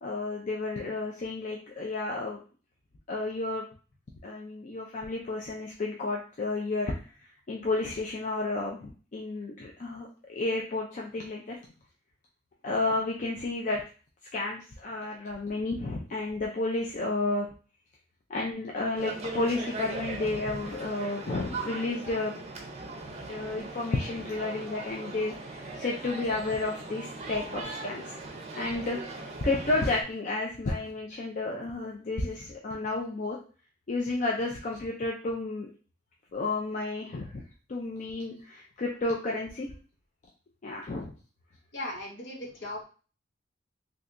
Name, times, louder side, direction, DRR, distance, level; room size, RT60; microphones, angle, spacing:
voice 1, 0.0-2.4 3.1-3.6 4.2-6.9 7.5-11.6 12.6-13.8 14.3-17.5 18.3-22.4 23.3-28.2 28.5-33.4 33.9-35.7 36.3-37.4 37.7-39.7 40.6-41.1, left 2 dB, 40° left, -1 dB, 0.4 m, -31 dB
sound 1, 19.0-30.0, right 3 dB, 35° right, 0.5 m, -39 dB
voice 2, 41.7-42.8, left 1 dB, 65° left, -1 dB, 1.0 m, -37 dB
3.3 x 2.7 x 2.5 m, 0.37 s
head